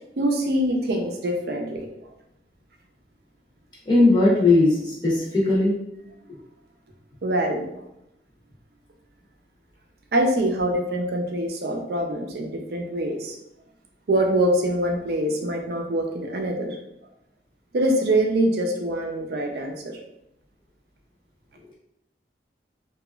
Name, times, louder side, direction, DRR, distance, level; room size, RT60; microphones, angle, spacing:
voice 1, 0.2-1.9 7.2-7.6 10.1-13.4 14.1-16.8 17.7-20.0, right 1 dB, 60° right, 2 dB, 0.4 m, -24 dB
voice 2, 3.8-5.8, left 2 dB, 25° left, -6 dB, 0.7 m, -18 dB
2.9 x 2.3 x 2.3 m, 0.84 s
head